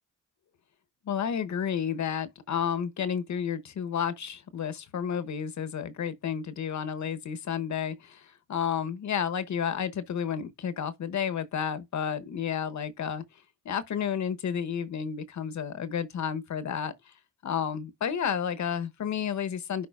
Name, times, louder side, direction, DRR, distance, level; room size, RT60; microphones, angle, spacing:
voice 1, 1.1-8.2 8.5-13.2 13.6-16.9 17.4-19.9, left 8 dB, 60° left, 1.0 m, -31 dB
10.5 x 4.2 x 2.4 m
cardioid pair, 60°, 32 cm